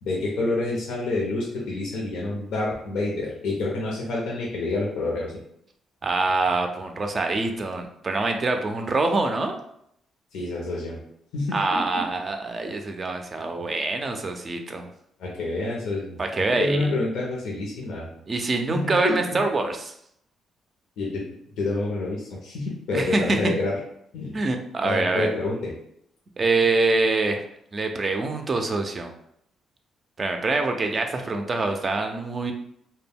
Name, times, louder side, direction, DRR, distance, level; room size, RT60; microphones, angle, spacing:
voice 1, 0.0-5.3 10.3-11.0 11.3-12.0 15.2-16.2 16.5-18.1 18.7-19.4 21.0-21.3 21.6-23.7 24.1-24.4 24.8-25.7, left 2 dB, 80° left, -4 dB, 0.7 m, -28 dB
voice 2, 6.0-9.5 11.5-14.9 16.2-16.9 18.3-19.9 22.9-23.5 24.3-25.3 26.4-27.4 27.7-29.1 30.2-32.5, right 3 dB, 35° right, 4 dB, 0.4 m, -25 dB
2.2 x 2.1 x 3.4 m, 0.73 s
cardioid pair, 90°, 0 cm